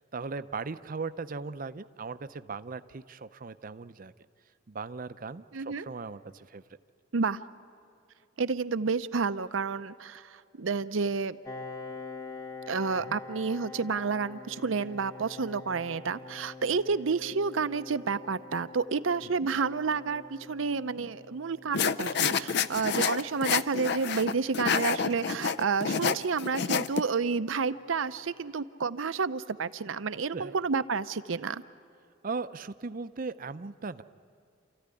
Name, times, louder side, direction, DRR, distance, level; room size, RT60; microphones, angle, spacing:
voice 1, 0.0-4.1 4.7-6.6 13.0-13.2 30.3-30.5 32.2-34.0, right 4 dB, 45° right, 12 dB, 0.6 m, -38 dB
voice 2, 5.5-5.8 7.1-7.4 8.4-10.2 10.6-11.4 12.7-31.6, right 5 dB, 85° right, 12 dB, 0.7 m, -30 dB
Piano, 11.4-26.8, left 4 dB, 20° left, 0.8 m, -47 dB
sound 1, 21.7-27.0, left 6 dB, 60° left, 0.5 m, -28 dB
28.5 x 14.5 x 9.8 m, 2.5 s
head